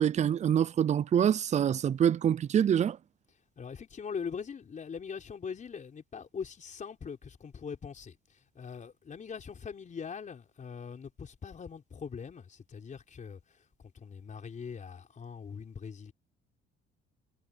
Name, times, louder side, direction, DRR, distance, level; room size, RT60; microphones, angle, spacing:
voice 1, 0.0-3.0, right 9 dB, 35° right, 0.5 m, -25 dB
voice 2, 3.6-8.2 8.5-13.4 13.9-16.1, left 6 dB, 35° left, 4.5 m, -41 dB
cardioid pair, 120°, 21 cm